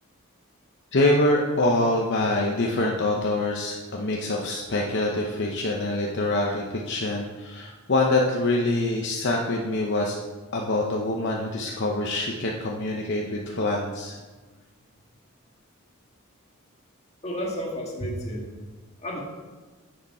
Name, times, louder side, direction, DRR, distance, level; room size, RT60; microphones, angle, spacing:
voice 1, 0.9-10.2 10.5-14.2, left 2 dB, 55° left, 0 dB, 0.8 m, -25 dB
voice 2, 17.2-18.5 19.0-19.2, equal, 30° left, -1 dB, 1.6 m, -31 dB
9.5 x 6.5 x 4.3 m, 1.3 s
head